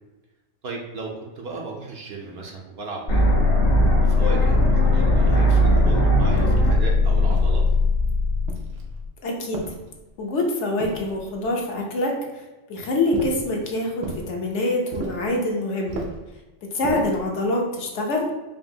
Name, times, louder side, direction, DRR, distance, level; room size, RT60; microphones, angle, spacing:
voice 1, 0.6-1.1 1.4-3.3 4.0-7.6, right 3 dB, 60° right, 0 dB, 0.8 m, -35 dB
sound 1, 3.1-9.0, left 1 dB, 90° left, 1.6 m, -18 dB
sound 2, 6.3-6.7 7.3-7.9 8.5-9.0 9.5-10.2 10.8-11.5 13.1-13.5 14.0-14.3 14.9-15.3 15.9-16.3 16.8-17.3, right 2 dB, 80° right, 1.0 m, -34 dB
voice 2, 9.2-9.6 10.2-12.4 12.7-16.0 16.7-18.3, left 1 dB, 65° left, 0 dB, 1.0 m, -25 dB
4.9 x 2.6 x 2.7 m, 1.1 s
omnidirectional pair, 1.3 m